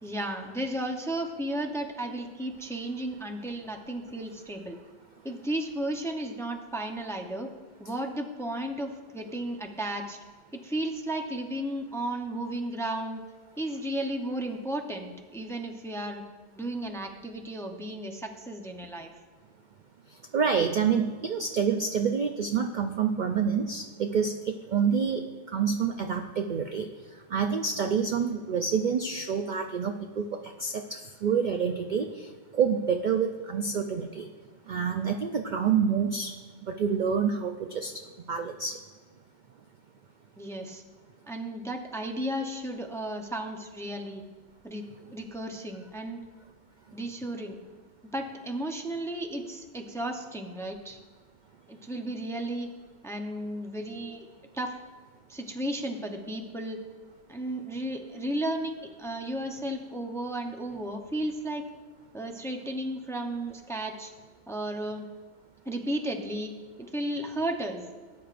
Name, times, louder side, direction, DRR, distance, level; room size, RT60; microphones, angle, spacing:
voice 1, 0.0-4.8 5.2-7.5 7.8-10.2 10.5-13.2 13.6-16.2 16.5-19.1 40.4-40.8 41.3-44.2 44.6-46.2 46.9-47.6 48.1-51.0 51.7-52.7 53.0-54.3 54.5-54.8 55.3-56.8 57.3-61.6 62.1-64.1 64.5-65.1 65.7-66.5 66.8-67.8, right 1 dB, 5° left, 3 dB, 0.6 m, -34 dB
voice 2, 20.3-25.2 25.5-26.9 27.3-30.3 30.6-32.3 32.5-34.3 34.7-36.3 36.7-37.9 38.3-38.8, right 6 dB, 55° right, 5 dB, 0.5 m, -27 dB
18.0 x 9.5 x 2.5 m, 1.4 s
omnidirectional pair, 1.2 m